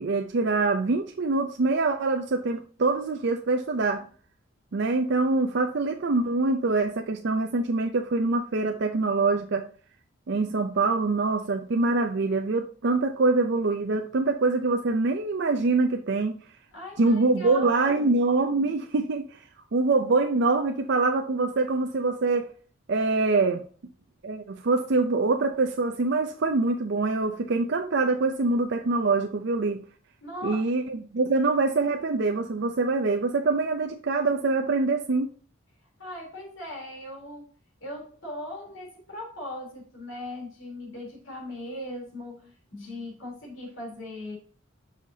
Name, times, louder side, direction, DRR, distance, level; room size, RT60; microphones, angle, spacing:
voice 1, 0.0-4.0 4.7-9.6 10.3-16.4 17.0-19.4 19.7-22.5 22.9-23.6 24.2-29.8 30.4-35.3, right 3 dB, 60° right, 4 dB, 0.5 m, -24 dB
voice 2, 16.7-18.2 30.2-30.7 36.0-37.5 37.8-44.4, left 1 dB, 75° left, -1 dB, 3.3 m, -39 dB
6.3 x 5.7 x 2.7 m, 0.42 s
head